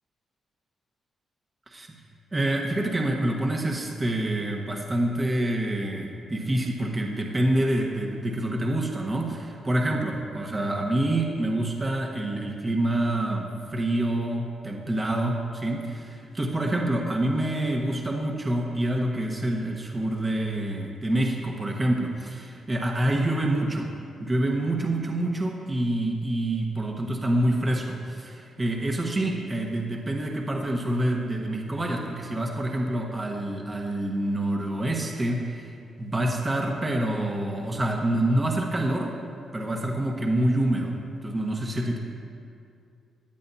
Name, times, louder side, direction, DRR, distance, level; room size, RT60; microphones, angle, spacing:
voice 1, 2.3-23.9 24.2-35.7 36.0-39.1 39.5-40.9 41.2-42.0, right 1 dB, 25° right, 1 dB, 1.2 m, -27 dB
17.0 x 10.5 x 2.7 m, 2.5 s
cardioid pair, 105°, 0 cm